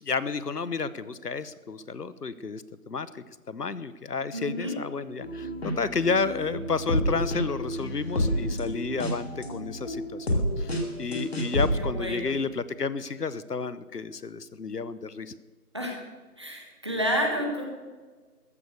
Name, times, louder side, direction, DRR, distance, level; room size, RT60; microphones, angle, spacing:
voice 1, 0.0-15.3, left 4 dB, 85° left, 16 dB, 1.0 m, -31 dB
voice 2, 4.3-4.7 11.7-12.4 15.7-16.0 16.4-17.6, equal, 20° right, 1 dB, 1.4 m, -30 dB
sound 1, 5.2-11.7, equal, 40° left, 2.5 m, -29 dB
14.0 x 11.0 x 6.8 m, 1.4 s
figure-of-eight pair, 170°, 46 cm